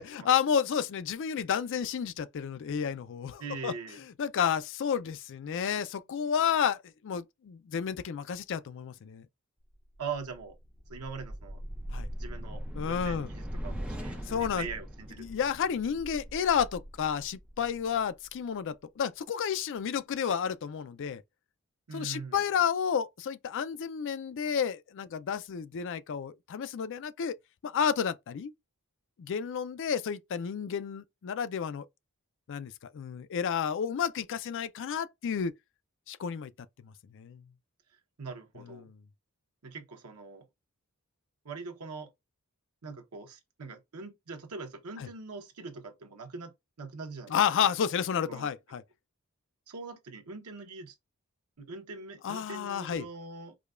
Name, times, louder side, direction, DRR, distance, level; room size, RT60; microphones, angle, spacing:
voice 1, 0.0-3.7 4.2-9.3 11.9-12.1 12.8-13.3 14.3-14.7 15.2-21.2 21.9-27.3 27.6-28.5 29.2-31.9 32.5-35.5 36.1-36.5 36.8-37.4 38.8-39.0 47.3-48.8 52.2-53.1, left 7 dB, 55° left, 0.4 m, -31 dB
voice 2, 3.4-4.0 10.0-10.6 10.9-11.6 12.2-15.3 21.9-22.4 38.2-38.9 39.6-40.5 41.4-42.1 42.8-47.3 48.3-48.5 49.7-50.9 51.6-53.6, right 4 dB, 85° right, 0.9 m, -42 dB
sound 1, 9.9-18.3, equal, 5° right, 0.8 m, -41 dB
4.9 x 2.2 x 2.4 m
head